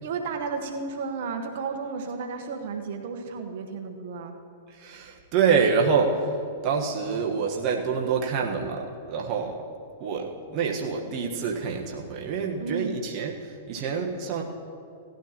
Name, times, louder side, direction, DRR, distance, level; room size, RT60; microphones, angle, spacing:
voice 1, 0.0-4.4 12.6-12.9, right 4 dB, 60° right, 4 dB, 1.3 m, -33 dB
voice 2, 4.7-9.6 10.0-14.4, right 5 dB, 45° right, 0 dB, 1.2 m, -26 dB
17.5 x 13.0 x 3.0 m, 2.5 s
hypercardioid pair, 115°, 0 cm